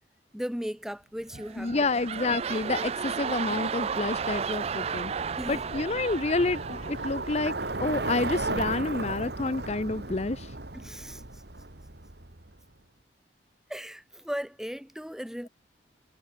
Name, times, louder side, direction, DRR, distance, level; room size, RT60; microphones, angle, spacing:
voice 1, 0.3-1.9 5.4-5.6 10.7-11.4 13.7-15.5, equal, 5° right, 1.1 m, -37 dB
sound 1, 1.3-7.9 8.4-8.5, right 6 dB, 35° right, 0.4 m, -34 dB
voice 2, 1.6-5.1 5.5-7.5 7.8-10.5, left 3 dB, 35° left, 0.7 m, -29 dB
Bicycle, 1.7-12.6, right 2 dB, 65° right, 2.4 m, -36 dB
head